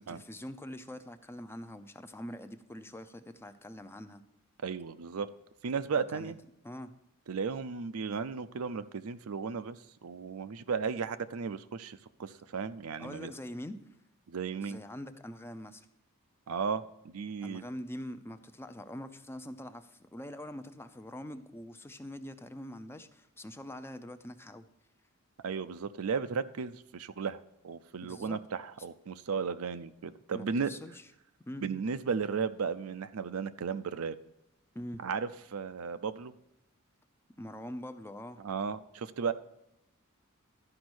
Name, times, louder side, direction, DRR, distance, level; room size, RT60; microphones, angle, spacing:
voice 1, 0.0-4.2 6.1-6.3 6.6-6.9 13.0-13.8 14.6-15.9 17.4-24.7 28.0-28.4 30.3-31.1 31.5-31.7 34.7-35.0 37.4-38.4, left 1 dB, 10° left, 10 dB, 0.5 m, -44 dB
voice 2, 4.6-5.3 5.6-6.4 7.3-13.3 14.3-14.8 16.5-17.6 25.4-30.7 31.6-34.2 35.0-36.3 38.4-39.3, right 5 dB, 85° right, 12 dB, 0.5 m, -35 dB
12.0 x 5.2 x 6.2 m, 0.84 s
head